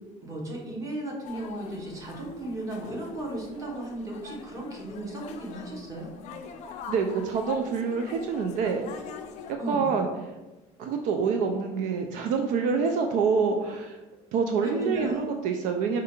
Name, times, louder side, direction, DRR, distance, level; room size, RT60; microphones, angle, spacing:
voice 1, 0.2-6.1 9.5-9.9 14.6-15.2, right 1 dB, 25° right, -2 dB, 1.1 m, -35 dB
sound 1, 1.2-9.6, left 6 dB, 55° left, 0.4 m, -43 dB
voice 2, 6.9-8.8 9.5-10.1 10.8-14.0 14.3-16.0, right 5 dB, 65° right, 5 dB, 0.4 m, -26 dB
4.6 x 2.4 x 4.3 m, 1.1 s
cardioid pair, 150°, 14 cm